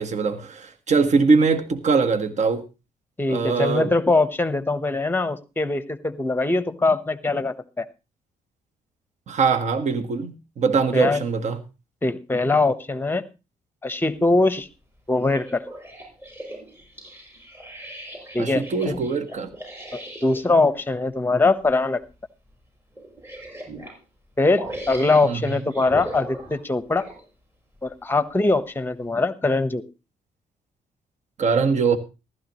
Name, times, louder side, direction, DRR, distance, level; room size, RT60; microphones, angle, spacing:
voice 1, 0.0-2.6 3.3-3.9 9.3-11.6 18.4-19.5 25.2-25.4 31.4-32.0, right 4 dB, 50° right, 1.6 m, -22 dB
voice 2, 3.2-7.8 10.9-11.2 12.0-13.2 13.8-14.7 15.1-15.6 18.3-19.0 19.9-22.0 24.4-27.1 27.8-29.8, left 3 dB, 15° left, 1.1 m, -22 dB
sound 1, 15.2-20.4 21.5-21.7 22.1-22.2 23.0-24.0 24.6-27.3 27.9-28.0, right 1 dB, 15° right, 7.6 m, -38 dB
15.0 x 13.0 x 3.1 m
cardioid pair, 95°, 15 cm